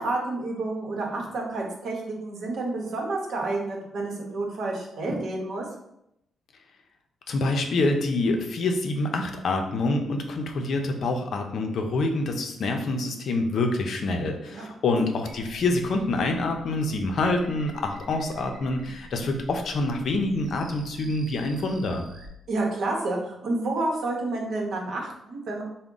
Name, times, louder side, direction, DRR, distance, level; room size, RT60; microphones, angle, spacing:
voice 1, 0.0-5.6 14.5-14.7 14.9-15.0 22.5-25.6, right 2 dB, 70° right, 0 dB, 0.8 m, -29 dB
voice 2, 7.3-22.0, left 2 dB, 65° left, 4 dB, 0.5 m, -26 dB
sound 1, 15.3-22.3, right 2 dB, 50° right, 0.5 m, -45 dB
3.5 x 2.1 x 3.8 m, 0.80 s
cardioid pair, 95°, 0 cm